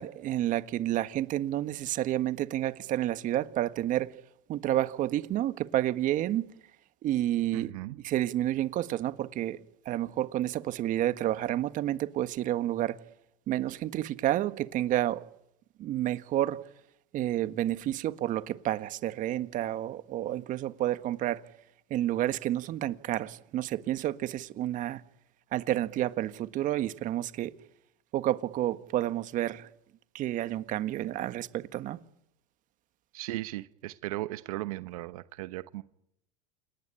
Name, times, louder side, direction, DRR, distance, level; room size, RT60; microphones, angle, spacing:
voice 1, 0.0-4.1 4.5-6.4 7.0-9.6 9.8-13.0 13.5-15.2 15.8-16.6 17.1-21.4 21.9-25.0 25.5-27.5 28.1-29.7 30.1-32.0, right 13 dB, 45° right, 1.5 m, -30 dB
voice 2, 7.5-8.0 33.1-35.8, right 18 dB, 75° right, 1.0 m, -37 dB
28.5 x 19.0 x 10.0 m
supercardioid pair, 110°, 18 cm